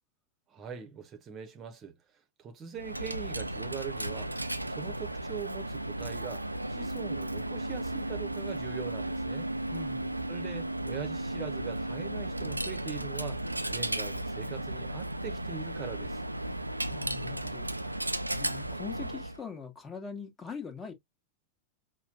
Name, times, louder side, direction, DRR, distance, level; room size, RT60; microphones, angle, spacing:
voice 1, 0.5-2.0 2.4-9.5 10.3-16.2, right 7 dB, 30° right, 0.9 m, -42 dB
Coin (dropping), 2.8-19.4, right 1 dB, 85° right, 0.3 m, -35 dB
voice 2, 9.7-10.2 16.9-20.9, left 6 dB, 20° left, 1.3 m, -43 dB
5.7 x 2.2 x 2.7 m
figure-of-eight pair, 90°, 0 cm